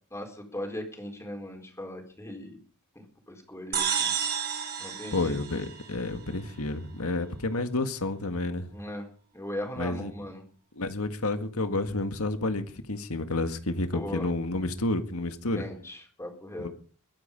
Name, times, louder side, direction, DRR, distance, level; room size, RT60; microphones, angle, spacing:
voice 1, 0.1-2.6 2.9-4.1 4.8-5.3 8.7-9.1 9.3-10.4 13.9-14.3 15.5-16.7, left 1 dB, 15° left, 4.2 m, -38 dB
sound 1, 3.7-6.3, right 7 dB, 45° right, 4.1 m, -31 dB
voice 2, 5.1-8.7 9.8-10.1 10.7-15.6 16.6-16.7, left 2 dB, 75° left, 1.9 m, -30 dB
22.5 x 10.0 x 5.4 m
head